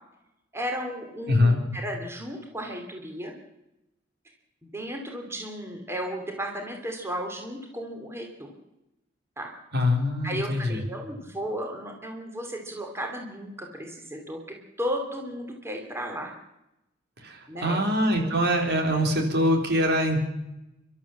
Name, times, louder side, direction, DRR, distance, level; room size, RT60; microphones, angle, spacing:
voice 1, 0.5-3.3 4.6-8.5 9.4-9.5 10.2-14.4 14.8-16.3 17.5-17.8 18.2-18.4, equal, 15° right, 2 dB, 2.9 m, -34 dB
voice 2, 1.3-1.6 9.7-10.8 17.2-20.2, left 1 dB, 55° right, 2 dB, 3.9 m, -23 dB
30.0 x 12.5 x 7.3 m, 0.93 s
head